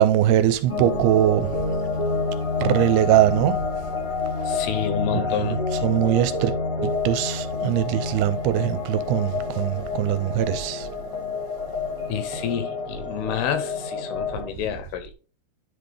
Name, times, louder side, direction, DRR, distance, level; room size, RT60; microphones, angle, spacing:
voice 1, 0.0-1.5 2.6-3.6 4.5-4.6 5.1-5.6 5.8-6.5 6.8-10.9, right 12 dB, 85° right, 2.6 m, -21 dB
sound 1, 0.7-14.5, left 3 dB, 45° left, 1.1 m, -28 dB
voice 2, 4.4-5.6 12.1-15.1, left 9 dB, 80° left, 2.5 m, -29 dB
10.5 x 4.0 x 3.3 m
omnidirectional pair, 4.7 m